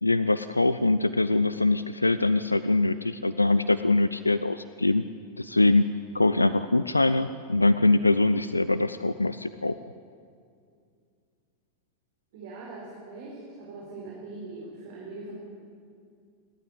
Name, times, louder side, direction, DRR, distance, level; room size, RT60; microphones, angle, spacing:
voice 1, 0.0-5.0 5.4-5.9 6.1-9.8, left 2 dB, 85° left, 14 dB, 0.5 m, -23 dB
voice 2, 12.3-15.3, right 3 dB, 55° right, -3 dB, 4.4 m, -41 dB
29.0 x 12.5 x 8.2 m, 2.3 s
figure-of-eight pair, 90°, 0 cm